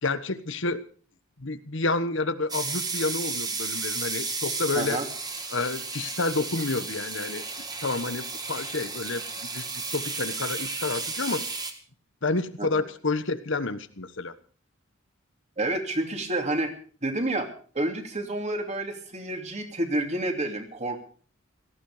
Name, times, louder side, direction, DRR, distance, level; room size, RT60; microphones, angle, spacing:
voice 1, 0.0-0.8 1.4-5.0 5.5-7.4 7.8-9.2 9.5-11.4 12.2-14.3, left 3 dB, 65° left, 12 dB, 1.3 m, -29 dB
sound 1, 2.5-11.7, right 4 dB, 20° right, 2.0 m, -33 dB
voice 2, 4.7-5.1 12.6-12.7 15.6-16.7 17.0-17.5 17.7-21.0, right 1 dB, 35° right, 4 dB, 2.8 m, -29 dB
17.5 x 14.5 x 5.0 m, 0.43 s
head